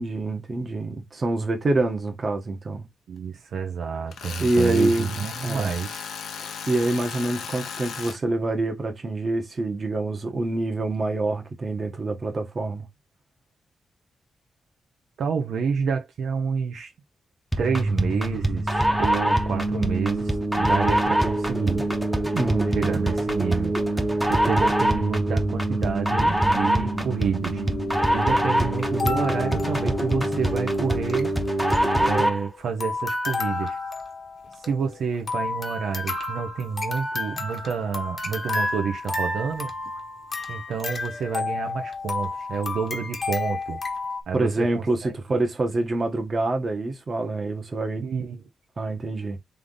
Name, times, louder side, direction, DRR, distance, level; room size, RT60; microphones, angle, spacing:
voice 1, 0.0-2.9 4.4-5.7 6.4-12.9 22.3-22.8 44.3-48.1 48.8-49.4, right 2 dB, 35° right, 1.2 m, -26 dB
voice 2, 3.1-6.0 15.2-16.9 17.6-21.8 22.7-23.8 24.3-27.6 28.1-31.3 32.0-33.8 34.7-39.7 40.5-43.8 44.3-45.4 48.0-48.4, right 6 dB, 75° right, 0.8 m, -29 dB
Tools, 4.1-8.2, left 6 dB, 80° left, 0.8 m, -36 dB
sound 1, 17.5-32.5, right 1 dB, 5° right, 0.9 m, -24 dB
sound 2, 28.8-30.5 30.7-30.8 31.0-31.3 31.7-32.5 32.8-44.2, left 3 dB, 35° left, 1.0 m, -31 dB
3.5 x 3.5 x 3.9 m
cardioid pair, 120°, 0 cm